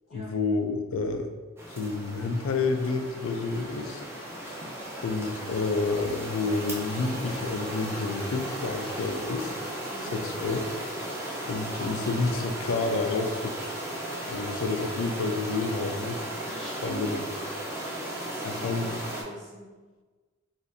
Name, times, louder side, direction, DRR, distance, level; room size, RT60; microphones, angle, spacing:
voice 1, 0.1-1.3 1.7-4.0 5.0-9.5 10.1-10.6 11.5-13.5 14.3-16.2 16.8-17.2 18.4-19.0, left 3 dB, 85° left, 6 dB, 0.4 m, -29 dB
sound 1, 1.6-19.2, right 1 dB, 15° right, 0.5 m, -36 dB
voice 2, 9.9-10.2 16.4-17.2 18.3-18.6 19.1-19.7, equal, 35° right, -10 dB, 1.3 m, -43 dB
4.0 x 2.5 x 2.6 m, 1.4 s
head